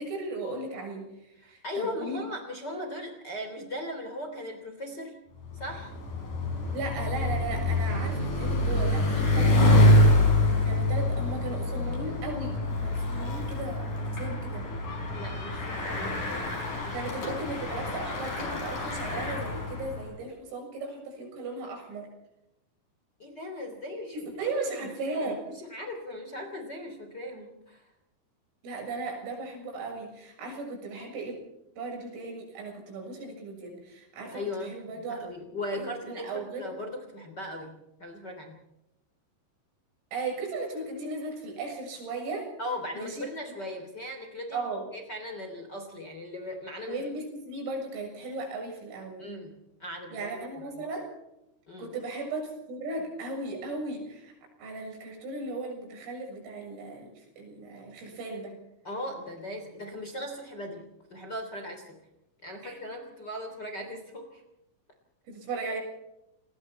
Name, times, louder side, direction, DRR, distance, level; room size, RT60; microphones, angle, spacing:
voice 1, 0.0-2.3 6.7-10.0 10.6-14.7 16.9-22.1 24.1-25.4 28.6-31.4 31.8-35.3 35.7-36.6 40.1-42.5 42.9-43.3 44.5-44.9 46.9-49.3 50.1-51.1 51.8-54.3 54.6-58.5 62.6-62.8 65.3-65.8, right 2 dB, 80° right, 2 dB, 9.6 m, -36 dB
voice 2, 1.4-5.2 5.5-5.9 9.3-9.6 15.1-17.0 23.2-24.9 25.2-27.9 34.3-38.6 42.6-44.6 44.9-47.0 49.2-50.8 51.7-51.9 58.8-62.0 62.4-64.4, left 1 dB, 25° left, 4 dB, 3.0 m, -38 dB
Bicycle, 5.4-20.1, left 1 dB, 40° left, 6.6 m, -26 dB
29.5 x 20.5 x 4.4 m, 0.87 s
omnidirectional pair, 5.8 m